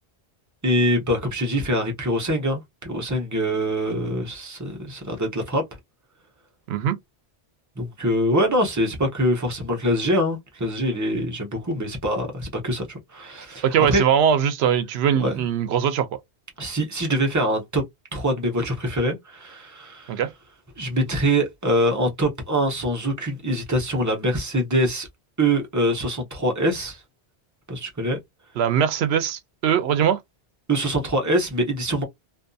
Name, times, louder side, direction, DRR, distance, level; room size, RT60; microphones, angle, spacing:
voice 1, 0.6-5.6 7.8-14.0 15.2-15.4 16.6-17.8 18.1-20.2 20.8-25.1 25.4-27.0 27.7-28.2 30.7-32.0, equal, 20° right, 0.6 m, -24 dB
voice 2, 13.6-16.1 20.1-20.3 28.6-30.2, right 8 dB, 75° right, 0.8 m, -21 dB
2.5 x 2.5 x 2.2 m
omnidirectional pair, 1.1 m